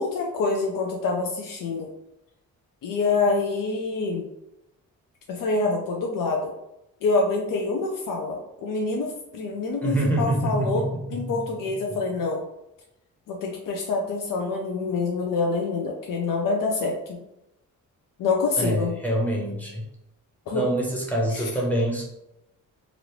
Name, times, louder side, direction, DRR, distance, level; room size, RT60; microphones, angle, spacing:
voice 1, 0.0-1.9 2.8-4.3 5.3-6.5 7.0-12.4 13.3-17.2 18.2-18.9 20.5-20.6 21.3-21.5, left 3 dB, 80° left, 1 dB, 0.5 m, -26 dB
voice 2, 9.8-10.9 18.6-19.8 20.5-22.0, right 1 dB, 5° left, -3 dB, 0.7 m, -25 dB
3.1 x 2.5 x 3.0 m, 0.87 s
wide cardioid pair, 160°, 32 cm